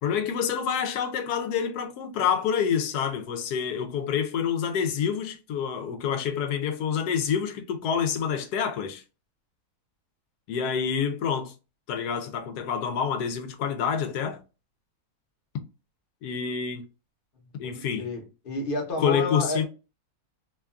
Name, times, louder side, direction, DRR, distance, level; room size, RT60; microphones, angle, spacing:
voice 1, 0.0-9.0 10.5-11.5 11.9-14.4 16.2-16.8 17.5-18.1 19.0-19.7, left 7 dB, 85° left, 1.1 m, -27 dB
voice 2, 17.6-19.7, left 2 dB, 40° left, 0.9 m, -31 dB
3.0 x 2.3 x 2.3 m
omnidirectional pair, 1.6 m